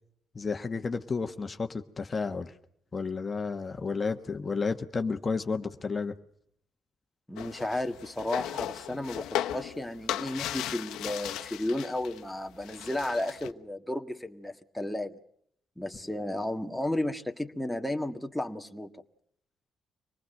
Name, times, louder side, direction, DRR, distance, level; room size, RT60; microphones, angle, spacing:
voice 1, 0.3-2.5 2.9-6.2, left 4 dB, 30° left, 6 dB, 1.4 m, -32 dB
voice 2, 7.3-15.2 15.8-18.9, left 1 dB, 5° left, 4 dB, 1.7 m, -33 dB
sound 1, 7.4-12.2 12.5-13.5, left 12 dB, 90° left, 1.1 m, -36 dB
25.0 x 19.5 x 6.5 m, 0.68 s
cardioid pair, 90°, 0 cm